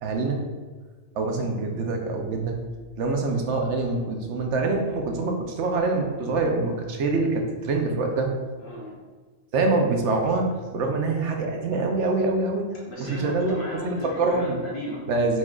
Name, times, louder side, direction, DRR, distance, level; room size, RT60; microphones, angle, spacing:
voice 1, 0.0-0.4 1.2-2.5 3.0-8.3 9.5-10.5 10.7-12.7 13.0-13.5 14.2-14.6 15.1-15.4, right 3 dB, 85° right, 3 dB, 1.0 m, -25 dB
voice 2, 8.6-8.9 12.9-15.0, left 1 dB, 55° left, -4 dB, 1.1 m, -34 dB
4.4 x 4.4 x 2.4 m, 1.4 s
omnidirectional pair, 1.2 m